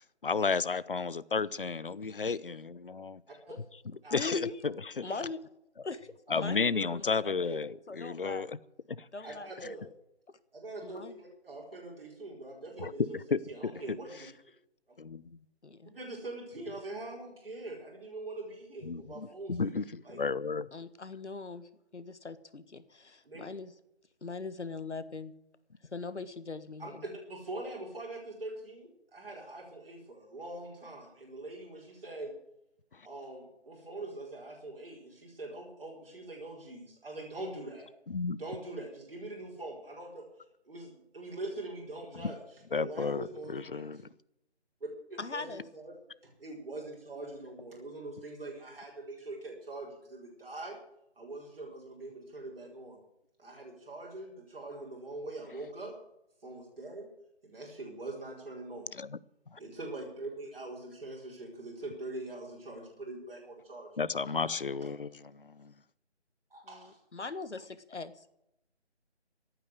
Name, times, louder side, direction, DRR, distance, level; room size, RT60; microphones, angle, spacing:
voice 1, 0.0-3.2 4.1-5.0 6.3-8.6 8.9-9.1 12.8-14.0 15.0-15.4 18.8-20.7 32.9-33.0 38.1-38.4 42.1-42.3 42.7-44.0 58.9-59.2 59.5-59.6 64.0-65.7, left 4 dB, 50° left, 0.7 m, -33 dB
voice 2, 4.1-4.6 5.0-5.4 5.8-7.6 7.9-8.5 9.1-9.7 10.3-10.4 10.8-11.2 15.6-15.9 20.7-23.7 24.2-25.3 25.8-27.0 45.2-45.6 66.6-68.3, left 4 dB, 80° left, 1.6 m, -41 dB
voice 3, 9.2-9.8 10.5-13.2 13.5-14.3 15.9-19.7 20.0-20.2 23.2-23.4 26.8-32.3 33.0-37.9 38.4-40.3 40.7-42.4 42.7-44.0 44.8-45.9 46.2-50.8 51.2-53.0 53.4-55.9 56.4-57.1 57.4-58.9 59.6-63.9 64.4-64.5 66.5-67.0, right 2 dB, 55° right, 4.8 m, -43 dB
15.0 x 9.1 x 8.0 m
figure-of-eight pair, 170°, 34 cm